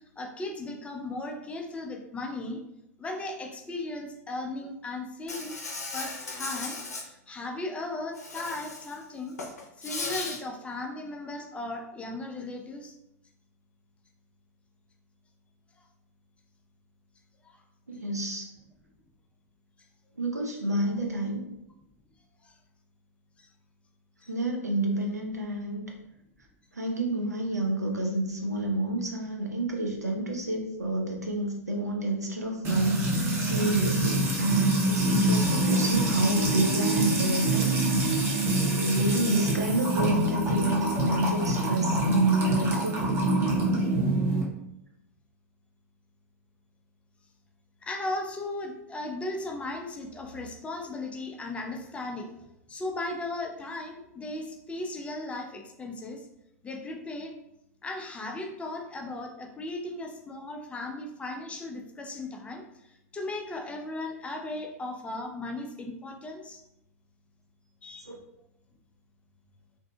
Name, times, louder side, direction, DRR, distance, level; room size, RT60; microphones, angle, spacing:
voice 1, 0.2-2.6 3.0-5.6 5.9-9.4 9.8-13.0 17.4-17.6 22.4-22.6 23.4-23.5 24.2-24.3 47.8-56.3 56.6-57.3 57.8-66.6 67.8-68.1, left 2 dB, 15° left, 2 dB, 0.4 m, -37 dB
Insect, 5.3-7.0 8.1-9.0 9.3-10.4, left 3 dB, 80° left, 0.5 m, -36 dB
voice 2, 17.9-18.5 20.2-21.4 24.3-25.8 26.7-37.9 38.6-43.0 68.1-68.2, right 1 dB, 90° right, 1 dB, 0.5 m, -28 dB
Music / Water tap faucet / Trickle dribble, 32.6-44.4, right 1 dB, 30° right, 0.7 m, -26 dB
2.5 x 2.5 x 2.2 m, 0.85 s
figure-of-eight pair, 90°, 9 cm